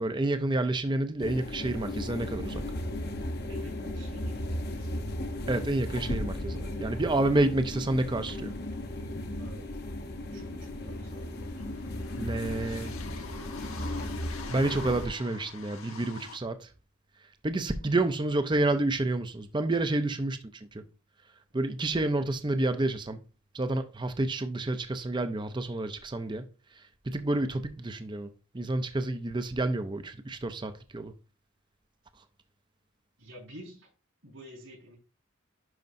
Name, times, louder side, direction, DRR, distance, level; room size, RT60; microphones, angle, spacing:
voice 1, 0.0-2.6 5.5-8.5 12.1-12.9 14.5-16.6 17.4-20.4 21.5-23.2 23.5-26.4 27.1-28.3 28.5-31.1, right 2 dB, 20° right, 0.5 m, -29 dB
sound 1, 1.2-15.1, left 1 dB, 50° left, 0.9 m, -36 dB
voice 2, 3.5-5.1 9.3-9.7 10.1-11.6 17.6-17.7 20.0-20.1 33.2-33.9 34.2-34.9, equal, 70° right, 4.6 m, -51 dB
sound 2, 9.8-9.9 10.1-16.4, left 5 dB, 80° left, 1.1 m, -46 dB
11.0 x 5.2 x 2.6 m
head